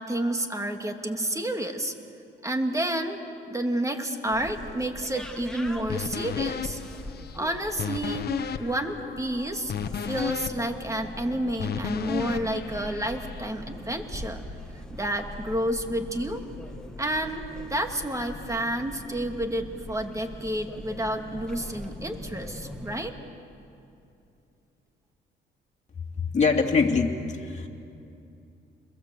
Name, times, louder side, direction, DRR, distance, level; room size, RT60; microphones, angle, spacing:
voice 1, 0.0-1.9 2.4-3.2 3.5-6.8 7.3-8.3 8.6-14.4 14.7-16.4 17.0-23.1, right 1 dB, 15° right, 5 dB, 2.6 m, -30 dB
sound 1, 4.3-23.1, left 1 dB, 5° left, 2.2 m, -42 dB
sound 2, 5.9-13.5, left 7 dB, 55° left, 1.3 m, -34 dB
voice 2, 26.2-27.7, left 4 dB, 35° left, 1 dB, 2.9 m, -24 dB
28.5 x 22.0 x 8.0 m, 2.7 s
cardioid pair, 90°, 20 cm